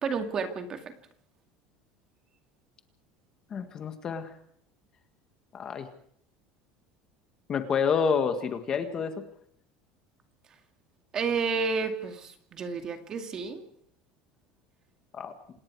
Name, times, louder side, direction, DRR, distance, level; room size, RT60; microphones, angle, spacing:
voice 1, 0.0-0.9 11.1-13.6, right 5 dB, 25° right, 6 dB, 2.2 m, -31 dB
voice 2, 3.5-4.3 5.5-5.9 7.5-9.2 15.1-15.3, left 6 dB, 25° left, 7 dB, 1.7 m, -28 dB
28.0 x 19.5 x 4.8 m, 0.66 s
cardioid pair, 165°, 2 cm